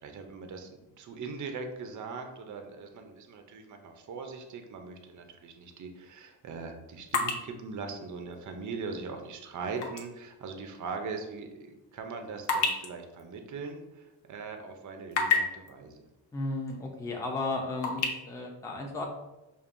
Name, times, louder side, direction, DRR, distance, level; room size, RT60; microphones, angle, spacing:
voice 1, 0.0-16.0, right 4 dB, 40° right, 5 dB, 0.5 m, -40 dB
sound 1, 5.0-5.2 5.7-10.1 10.5-10.6 11.2-14.3 14.7-15.7 16.7-16.8 17.2-18.1, left 4 dB, 70° left, 0.8 m, -32 dB
voice 2, 16.3-19.0, left 2 dB, 5° left, 0 dB, 0.5 m, -34 dB
5.3 x 2.5 x 2.5 m, 1.0 s
cardioid pair, 110°, 46 cm